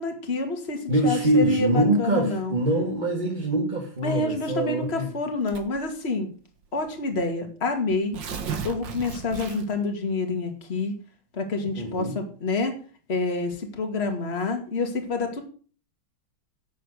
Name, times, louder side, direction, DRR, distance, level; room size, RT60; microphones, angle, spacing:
voice 1, 0.0-2.6 4.0-6.3 6.7-8.2 8.6-10.9 11.3-12.7 13.1-15.4, left 3 dB, 30° left, 4 dB, 2.4 m, -28 dB
voice 2, 0.9-5.1 11.7-12.2, right 1 dB, 25° right, -1 dB, 2.1 m, -24 dB
Tearing, 5.5-5.9 6.8-6.9 7.1-7.2 7.9-9.9, right 6 dB, 70° right, 2.3 m, -34 dB
11.5 x 8.4 x 6.5 m, 0.41 s
omnidirectional pair, 2.2 m